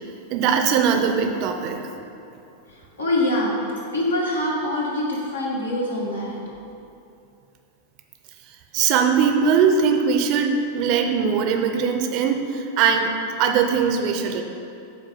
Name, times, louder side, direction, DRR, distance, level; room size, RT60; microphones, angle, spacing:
voice 1, 0.3-1.8 8.7-13.1 13.4-14.4, right 6 dB, 40° right, 5 dB, 0.5 m, -20 dB
voice 2, 3.0-3.5 3.9-6.4, left 1 dB, 75° left, -4 dB, 1.3 m, -24 dB
5.9 x 4.1 x 5.4 m, 2.7 s
figure-of-eight pair, 90°, 0 cm